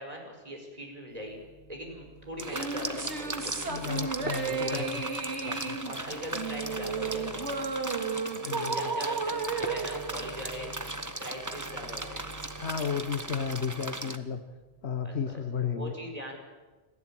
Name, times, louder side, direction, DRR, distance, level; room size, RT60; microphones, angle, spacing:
voice 1, 0.0-1.4 1.7-4.0 4.4-4.9 5.4-5.6 5.9-7.5 8.4-10.7 11.2-12.3 15.0-15.4 15.7-16.4, equal, 35° right, 2 dB, 5.0 m, -40 dB
sound 1, 1.1-14.1 14.4-15.4, right 1 dB, 5° left, 7.2 m, -52 dB
sound 2, 2.4-14.2, right 2 dB, 15° right, 1.0 m, -38 dB
sound 3, 2.4-11.0, right 4 dB, 80° right, 2.5 m, -34 dB
voice 2, 3.7-5.0 5.4-5.8 8.5-8.8 12.6-14.4 14.8-15.9, left 7 dB, 70° left, 7 dB, 1.5 m, -33 dB
29.5 x 11.5 x 8.9 m, 1.2 s
omnidirectional pair, 1.1 m